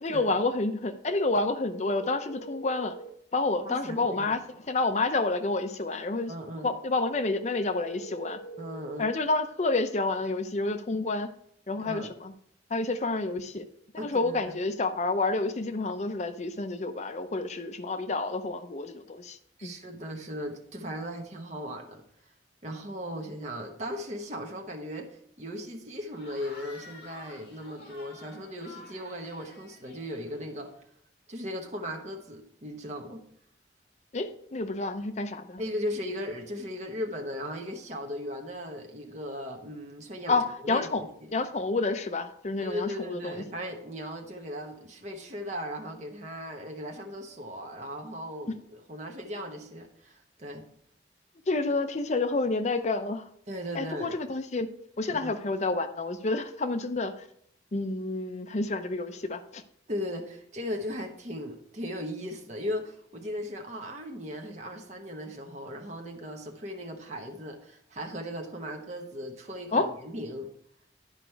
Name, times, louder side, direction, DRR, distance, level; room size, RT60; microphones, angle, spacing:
voice 1, 0.0-3.0 3.3-6.3 6.6-8.4 9.0-11.3 11.7-12.3 12.7-13.7 13.9-19.8 34.1-35.6 40.3-41.0 41.3-43.4 51.5-53.3 53.7-54.7 55.0-57.3 57.7-59.6 69.7-69.9, left 3 dB, 40° left, 9 dB, 0.5 m, -29 dB
sound 1, 1.1-3.1 7.1-9.1, right 2 dB, 25° left, 1.2 m, -44 dB
voice 2, 3.6-4.3 6.3-6.7 8.6-9.1 11.8-12.1 14.0-14.4 19.6-22.0 22.6-30.7 31.3-33.2 35.6-41.3 42.6-50.6 53.5-54.2 55.1-55.3 59.9-70.5, equal, 40° right, 2 dB, 1.0 m, -37 dB
Cheering / Crowd, 26.1-30.8, left 2 dB, 55° left, 2.4 m, -50 dB
9.8 x 5.0 x 4.5 m, 0.69 s
head